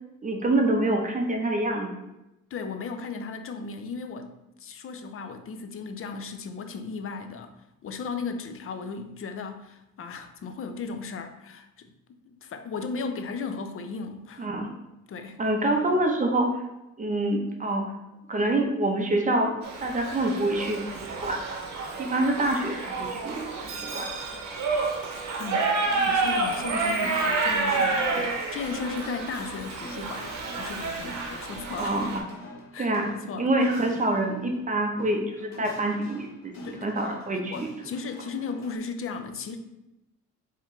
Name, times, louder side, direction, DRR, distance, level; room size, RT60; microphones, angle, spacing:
voice 1, 0.2-1.9 14.4-14.7 15.4-16.6 17.0-17.8 18.3-19.5 19.8-20.8 21.2-21.6 22.0-24.1 31.8-32.2 32.8-33.1 33.4-37.7, right 1 dB, 25° right, 2 dB, 0.8 m, -26 dB
voice 2, 2.5-4.3 4.6-7.5 7.8-11.9 12.3-14.5 15.1-15.4 25.4-25.7 26.0-32.0 32.7-33.5 36.6-39.6, left 4 dB, 45° left, 8 dB, 0.5 m, -36 dB
Shout / Livestock farm animals working animals, 19.6-32.2, right 3 dB, 65° right, 0.9 m, -29 dB
sound 1, 25.8-38.8, equal, 65° left, 1.0 m, -45 dB
4.3 x 3.7 x 3.2 m, 0.94 s
cardioid pair, 90°, 30 cm